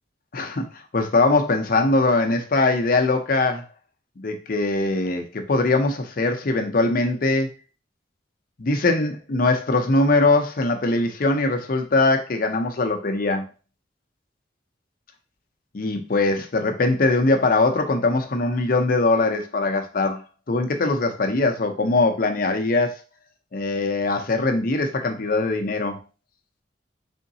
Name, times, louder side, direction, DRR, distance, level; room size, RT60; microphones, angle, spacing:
voice 1, 0.3-0.7 0.9-3.6 4.2-7.5 8.6-13.5 15.7-20.2 20.5-22.9 23.5-26.0, left 2 dB, 50° left, 5 dB, 0.6 m, -21 dB
3.9 x 3.5 x 2.7 m, 0.33 s
head